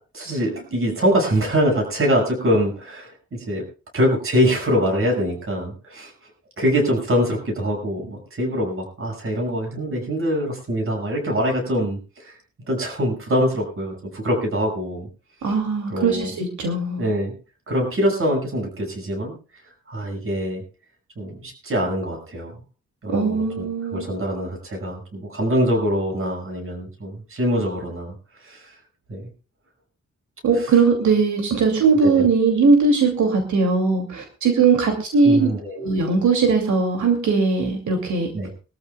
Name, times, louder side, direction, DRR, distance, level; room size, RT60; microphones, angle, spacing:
voice 1, 0.1-3.6 3.9-6.3 6.6-12.4 12.7-15.1 15.4-15.5 15.9-16.3 17.0-17.3 17.7-19.3 19.9-20.6 21.2-22.5 23.0-28.1 28.4-28.8 29.1-29.3 30.5-30.7 31.9-32.3 35.2-35.8 38.3-38.5, equal, 45° right, 2 dB, 6.0 m, -24 dB
voice 2, 15.4-17.0 23.1-24.1 30.4-35.5 35.8-38.3, right 4 dB, 80° right, 3 dB, 2.7 m, -19 dB
23.0 x 14.0 x 2.3 m, 0.35 s
wide cardioid pair, 145°, 29 cm